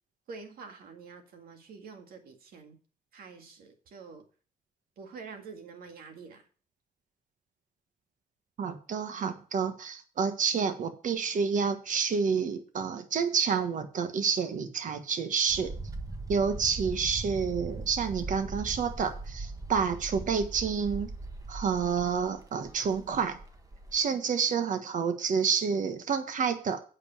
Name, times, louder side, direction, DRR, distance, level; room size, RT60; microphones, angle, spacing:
voice 1, 0.3-2.8 3.1-4.2 5.0-6.5, right 5 dB, 75° right, 5 dB, 1.9 m, -47 dB
voice 2, 8.6-15.7 16.3-21.1 21.5-23.4 23.9-26.8, right 6 dB, 55° right, 8 dB, 1.4 m, -29 dB
sound 1, 15.5-24.0, right 3 dB, 20° right, 1.4 m, -40 dB
8.3 x 5.4 x 7.1 m, 0.40 s
cardioid pair, 95°, 15 cm